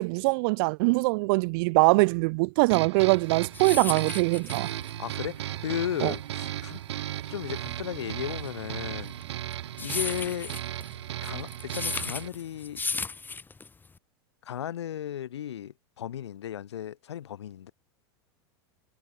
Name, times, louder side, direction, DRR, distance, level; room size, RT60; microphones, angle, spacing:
voice 1, 0.0-4.7 6.0-6.1, right 28 dB, 60° right, 1.4 m, -23 dB
sound 1, 2.7-12.3, right 13 dB, 80° right, 1.9 m, -36 dB
sound 2, 3.2-14.0, left 4 dB, 15° left, 2.8 m, -36 dB
voice 2, 5.0-6.8 7.3-9.2 9.8-10.6 11.2-12.8 14.4-17.7, left 10 dB, 90° left, 1.9 m, -35 dB
hypercardioid pair, 110°, 14 cm